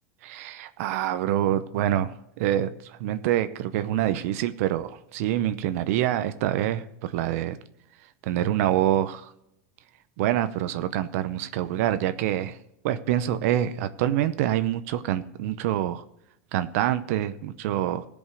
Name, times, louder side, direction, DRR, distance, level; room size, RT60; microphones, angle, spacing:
voice 1, 0.2-7.6 8.2-9.3 10.2-12.6 12.8-16.0 16.5-18.1, right 12 dB, 65° right, 11 dB, 0.7 m, -26 dB
15.5 x 5.3 x 6.3 m, 0.80 s
supercardioid pair, 135°, 8 cm